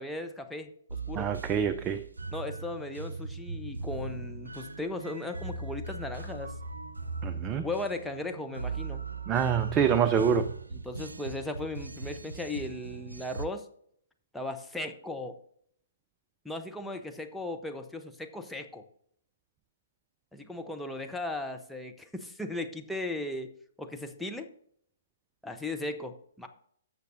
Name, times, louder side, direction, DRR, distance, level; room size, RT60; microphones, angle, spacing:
voice 1, 0.0-1.3 2.3-6.5 7.6-9.1 10.8-13.7 14.3-15.4 16.4-18.8 20.3-23.5 23.8-24.5 25.4-26.5, left 2 dB, ahead, 3 dB, 0.7 m, -37 dB
sound 1, 0.9-13.5, right 3 dB, 75° right, 0.5 m, -39 dB
voice 2, 1.2-2.1 7.2-7.7 9.3-10.5, right 7 dB, 20° right, 11 dB, 0.4 m, -26 dB
15.0 x 6.6 x 2.6 m, 0.65 s
figure-of-eight pair, 125°, 0 cm